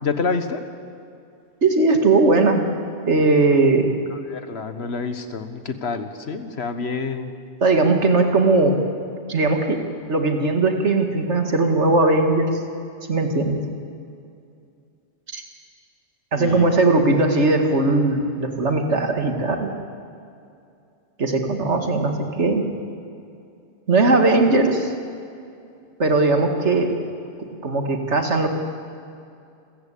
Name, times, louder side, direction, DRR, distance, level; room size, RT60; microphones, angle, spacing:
voice 1, 0.0-0.6 4.3-7.3 16.4-16.7, left 4 dB, 65° left, 9 dB, 1.6 m, -27 dB
voice 2, 1.6-2.6 3.1-4.0 7.6-8.8 9.3-9.8 10.1-12.6 13.1-13.6 15.3-15.4 16.3-19.7 21.2-22.6 23.9-24.9 26.0-26.9 27.6-28.5, right 3 dB, 80° right, 4 dB, 2.4 m, -19 dB
28.0 x 15.0 x 8.6 m, 2.5 s
omnidirectional pair, 1.2 m